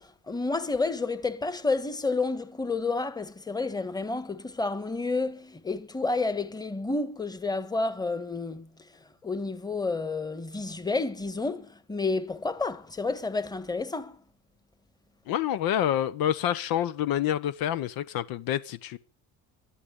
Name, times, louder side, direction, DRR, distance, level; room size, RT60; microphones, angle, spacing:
voice 1, 0.0-14.2, left 3 dB, 10° left, 1.5 m, -30 dB
voice 2, 15.3-19.0, left 11 dB, 65° left, 1.1 m, -27 dB
20.0 x 12.0 x 5.4 m
cardioid pair, 120°, 38 cm